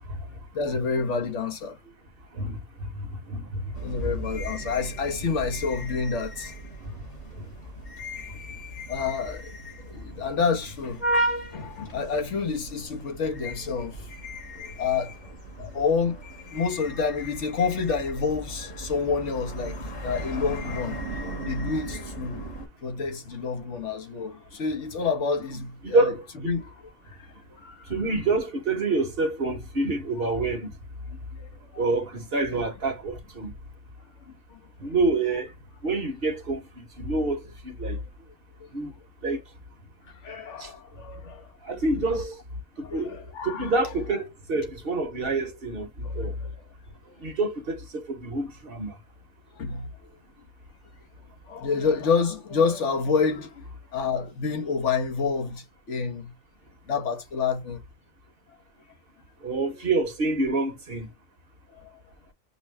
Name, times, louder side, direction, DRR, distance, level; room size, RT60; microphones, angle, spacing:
voice 1, 0.5-1.9 3.8-6.5 8.9-9.5 9.8-11.0 11.5-14.1 14.8-15.2 15.6-16.2 16.5-22.4 22.8-26.1 26.4-26.7 27.1-27.9 31.1-31.8 34.3-34.6 38.2-38.3 40.2-41.5 42.8-43.7 46.0-46.5 47.1-47.2 49.6-49.9 51.5-53.6 53.9-56.3 56.9-57.8 61.8-61.9, left 5 dB, 65° left, 1.4 m, -29 dB
voice 2, 2.4-3.6 4.0-4.1 25.8-26.5 27.9-30.7 31.8-33.5 34.8-35.5 35.8-38.0 38.7-38.9 39.2-39.4 40.6-40.7 41.6-42.4 42.8-43.1 43.4-45.9 46.1-46.3 47.2-48.9 59.4-61.1, right 2 dB, 50° right, 1.2 m, -27 dB
sound 1, 3.7-22.7, right 1 dB, 80° left, 2.9 m, -36 dB
5.4 x 2.2 x 3.3 m
omnidirectional pair, 1.4 m